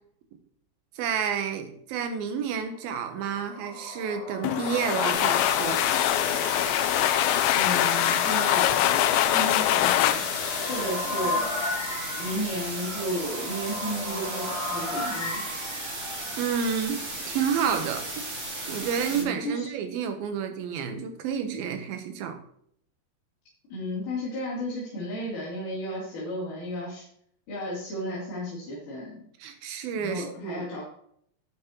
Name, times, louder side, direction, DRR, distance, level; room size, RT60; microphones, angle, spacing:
voice 1, 1.0-5.8 16.4-18.3 18.7-22.4 29.4-30.7, right 7 dB, 85° right, 7 dB, 2.9 m, -30 dB
sound 1, 3.0-16.4, left 1 dB, 35° left, 5.3 m, -36 dB
sound 2, 4.4-11.9, left 13 dB, 90° left, 2.4 m, -24 dB
sound 3, 5.1-19.2, right 2 dB, 35° right, 3.1 m, -35 dB
voice 2, 7.5-10.2 10.7-11.4 12.2-15.4 19.1-19.7 23.7-27.1 27.5-29.3 29.9-30.8, equal, 60° left, -9 dB, 4.7 m, -33 dB
12.5 x 8.4 x 3.0 m, 0.68 s
omnidirectional pair, 4.2 m